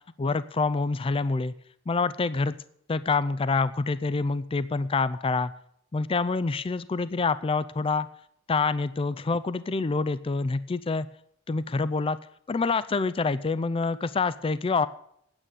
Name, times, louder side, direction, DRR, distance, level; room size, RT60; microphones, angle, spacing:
voice 1, 0.2-1.5 1.9-2.6 2.9-5.5 5.9-8.1 8.5-11.1 11.5-12.2 12.5-14.9, left 4 dB, 25° left, 15 dB, 0.4 m, -26 dB
9.1 x 8.9 x 8.3 m, 0.69 s
head